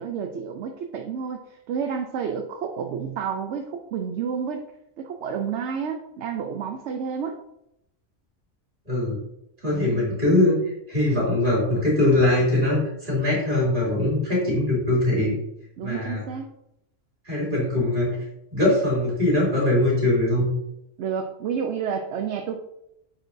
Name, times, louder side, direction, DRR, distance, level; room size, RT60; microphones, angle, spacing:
voice 1, 0.0-4.6 5.0-7.4 9.6-10.1 15.8-16.5 21.0-22.6, right 7 dB, 65° right, 5 dB, 0.8 m, -30 dB
voice 2, 8.9-9.2 9.6-10.6 10.9-15.3 15.8-16.2 17.2-18.2 18.5-20.5, left 1 dB, 40° right, -5 dB, 2.9 m, -22 dB
8.8 x 4.5 x 2.6 m, 0.82 s
omnidirectional pair, 1.4 m